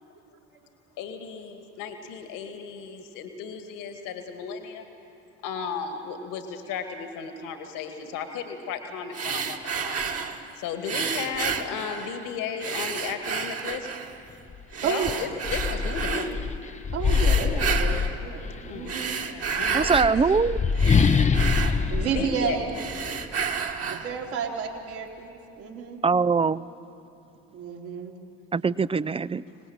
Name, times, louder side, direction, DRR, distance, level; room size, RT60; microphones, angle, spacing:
voice 1, 1.0-4.8 5.4-10.1 10.6-13.9 14.8-16.3 17.2-17.9 18.4-20.3 22.0-22.6, left 6 dB, 65° left, 2.2 m, -35 dB
sound 1, 9.1-10.4 10.8-12.3 12.6-14.2 14.7-16.3 17.0-18.2 18.7-20.1 20.5-22.4 22.7-24.1, right 6 dB, 40° right, 1.8 m, -31 dB
sound 2, 14.5-14.6 15.0-18.7 19.6-23.3, left 5 dB, 20° left, 0.7 m, -24 dB
voice 2, 14.8-15.2 16.9-19.2 21.9-22.7 23.9-26.0 27.5-28.1, right 7 dB, 70° right, 3.4 m, -31 dB
voice 3, 19.7-20.6 26.0-26.6 28.5-29.4, right 5 dB, 15° right, 0.4 m, -22 dB
25.0 x 19.0 x 8.9 m
hypercardioid pair, 55°, 35 cm